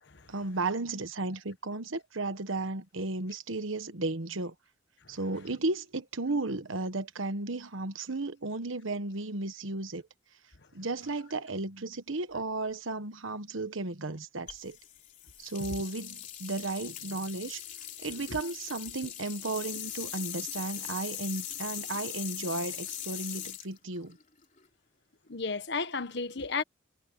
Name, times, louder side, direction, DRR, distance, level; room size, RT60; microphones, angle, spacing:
voice 1, 0.3-4.5 5.1-10.0 10.7-14.8 15.4-17.6 18.0-24.2, right 2 dB, 80° right, 1.3 m, -34 dB
sound 1, 14.5-24.6, left 10 dB, 40° left, 3.6 m, -40 dB
voice 2, 18.1-18.4 19.0-19.1 25.3-26.6, left 4 dB, 55° left, 1.3 m, -34 dB
head